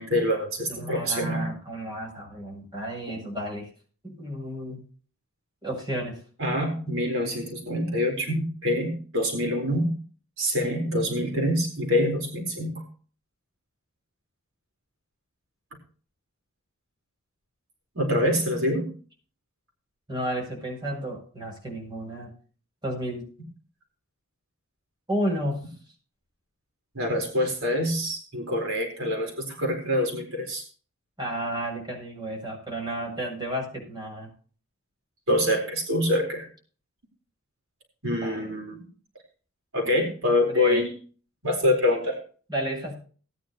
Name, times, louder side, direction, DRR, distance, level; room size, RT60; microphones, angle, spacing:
voice 1, 0.0-1.5 6.4-9.9 10.4-12.8 17.9-18.9 26.9-30.6 35.3-36.5 38.0-38.8 39.7-40.9 41.4-42.2, left 1 dB, 80° right, 1 dB, 4.3 m, -25 dB
voice 2, 0.7-3.7 4.0-4.8 5.6-6.2 18.0-18.2 20.1-22.3 22.8-23.3 25.1-25.7 31.2-34.3 38.2-38.4 40.5-40.8 42.5-43.0, right 1 dB, 20° right, 0 dB, 7.6 m, -32 dB
19.5 x 10.0 x 3.1 m, 0.41 s
head